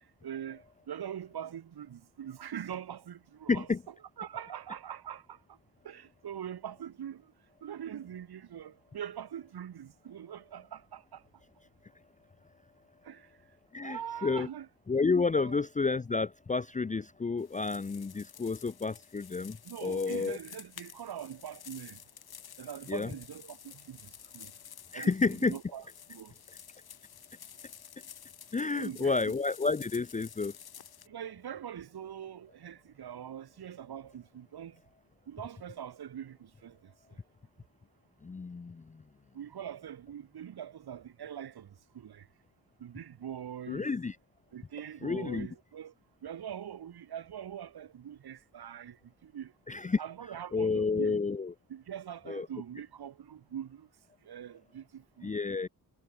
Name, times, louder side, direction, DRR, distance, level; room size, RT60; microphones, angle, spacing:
voice 1, 0.2-3.7 4.2-5.4 5.8-7.2 7.6-11.2 13.1-13.3 13.8-14.7 15.4-15.6 19.7-22.0 22.6-24.0 24.3-24.5 24.9-25.1 25.4-25.8 26.1-26.3 28.8-29.1 31.1-34.8 35.3-36.8 39.3-41.7 41.9-42.2 42.8-43.9 44.5-45.9 46.2-49.0 49.2-49.5 50.0-51.2 51.7-53.9 54.3-55.3, right 9 dB, 85° right, 3.7 m, -43 dB
voice 2, 3.5-3.8 13.7-14.5 14.9-20.4 22.9-23.1 24.9-25.6 28.5-30.5 38.2-38.8 43.7-44.2 45.0-45.5 49.7-50.0 50.5-51.5 52.3-52.5 55.2-55.7, left 4 dB, 20° left, 0.6 m, -30 dB
sound 1, 17.4-31.1, left 8 dB, 75° left, 5.6 m, -51 dB
wide cardioid pair, 120°, 37 cm